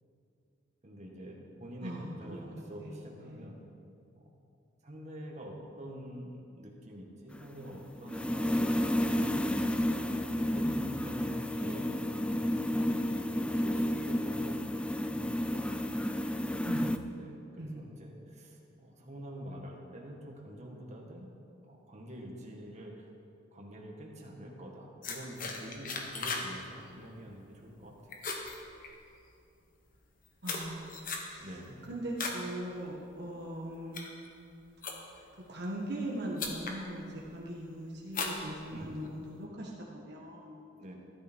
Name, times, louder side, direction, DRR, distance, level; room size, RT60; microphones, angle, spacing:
voice 1, 0.8-3.6 4.2-4.3 4.8-10.0 10.5-12.5 12.8-14.6 15.5-15.9 17.2-21.3 21.7-22.9 23.5-28.1 31.4-31.8 38.7-39.0 40.7-41.0, equal, 35° right, -2 dB, 1.9 m, -46 dB
voice 2, 1.8-3.5 16.6-18.1 30.4-31.5 31.9-34.1 35.5-40.6, right 1 dB, 60° right, -3 dB, 1.5 m, -40 dB
sound 1, 7.3-17.0, left 1 dB, 5° left, 0.4 m, -31 dB
sound 2, 25.0-26.5 26.8-27.1 27.5-27.8 28.1-29.3 29.9-32.4 32.8-33.2 33.7-35.3 36.0-36.1 36.4-36.8 37.3-37.6 38.1-39.1, left 4 dB, 45° left, 1.4 m, -38 dB
13.5 x 12.5 x 4.6 m, 2.6 s
head